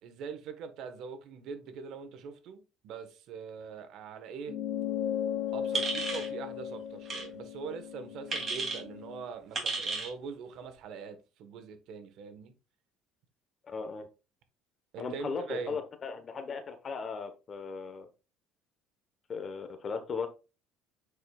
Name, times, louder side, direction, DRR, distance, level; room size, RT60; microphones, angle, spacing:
voice 1, 0.0-4.6 5.5-12.5 14.9-15.7, right 5 dB, 60° right, 1.2 m, -43 dB
sound 1, 4.5-9.3, left 9 dB, 55° left, 1.4 m, -36 dB
sound 2, 5.7-6.3 7.1-7.3 8.3-8.8 9.5-10.1, right 3 dB, 30° right, 2.8 m, -33 dB
voice 2, 13.6-14.1 15.0-18.1 19.3-20.3, left 5 dB, 30° left, 1.1 m, -37 dB
8.4 x 4.9 x 2.4 m
cardioid pair, 140°, 0 cm